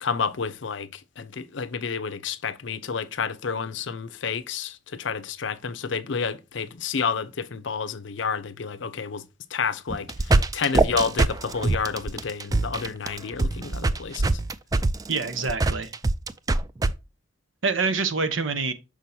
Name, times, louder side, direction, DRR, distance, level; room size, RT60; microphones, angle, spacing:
voice 1, 0.0-9.2 9.5-14.4, left 5 dB, 70° left, 0.6 m, -30 dB
sound 1, 9.9-16.9, right 2 dB, 20° right, 0.3 m, -23 dB
voice 2, 15.1-15.9 17.6-18.7, right 4 dB, 85° right, 1.0 m, -26 dB
6.4 x 6.1 x 2.7 m
head